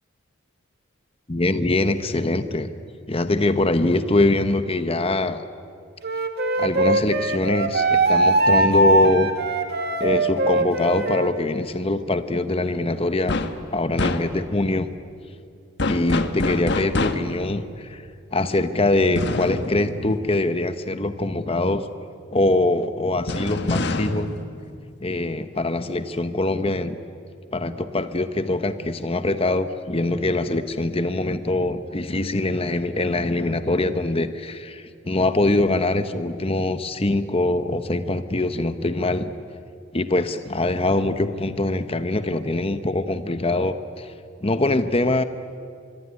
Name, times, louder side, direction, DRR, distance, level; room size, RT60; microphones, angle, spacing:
voice 1, 1.3-2.7 3.1-5.4 6.6-9.3 10.0-13.4 13.7-14.9 15.9-18.0 18.3-21.8 22.3-24.3 25.0-27.0 27.5-39.3 39.9-44.1 44.4-45.2, left 2 dB, 30° left, 10 dB, 1.0 m, -23 dB
Wind instrument woodwind instrument, 6.0-11.3, right 2 dB, 50° right, 2.1 m, -21 dB
sound 1, 13.3-13.6 14.0-14.6 15.8-17.4 19.2-21.0 23.3-25.4, left 2 dB, 55° left, 1.4 m, -27 dB
25.5 x 23.0 x 9.7 m, 2.4 s
head